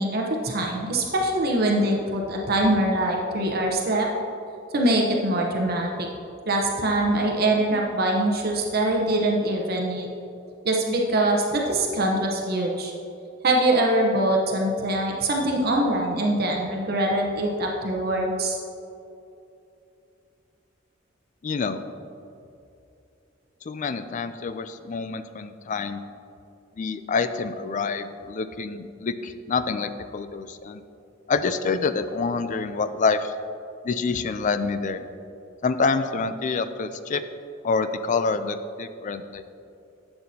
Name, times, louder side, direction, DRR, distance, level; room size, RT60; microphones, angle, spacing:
voice 1, 0.0-4.1 4.7-6.1 6.5-10.1 10.6-12.9 13.4-18.6, right 1 dB, 55° right, 0 dB, 0.8 m, -23 dB
voice 2, 21.4-21.8 23.7-26.0 26.8-30.8 31.3-33.3 33.8-35.0 35.6-37.2 37.6-39.4, left 4 dB, 40° left, 11 dB, 0.4 m, -27 dB
11.5 x 7.9 x 2.8 m, 2.7 s
head